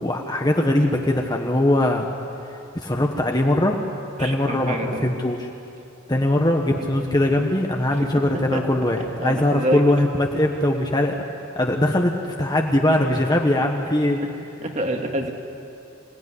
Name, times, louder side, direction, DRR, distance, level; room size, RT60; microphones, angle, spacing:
voice 1, 0.0-2.1 2.5-3.8 4.2-5.5 6.1-11.2 11.5-14.2, left 1 dB, 20° left, 1 dB, 1.3 m, -21 dB
voice 2, 4.2-5.1 7.9-8.1 8.5-8.6 9.2-9.8 14.6-15.3, right 1 dB, 35° right, 2 dB, 2.2 m, -26 dB
26.5 x 17.5 x 9.8 m, 2.7 s
head